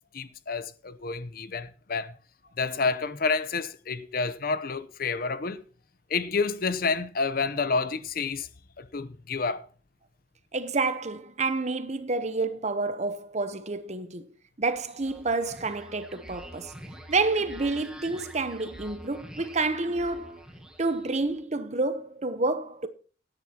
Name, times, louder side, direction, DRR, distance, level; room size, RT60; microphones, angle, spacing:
voice 1, 0.1-2.2 2.6-5.6 6.1-8.5 8.8-9.7, left 4 dB, 50° left, 0.8 m, -29 dB
voice 2, 10.5-14.3 14.6-16.7 17.1-20.4 20.8-22.9, right 3 dB, 40° right, 0.9 m, -29 dB
sound 1, 14.7-21.4, equal, 5° right, 1.6 m, -46 dB
16.5 x 10.5 x 2.9 m
head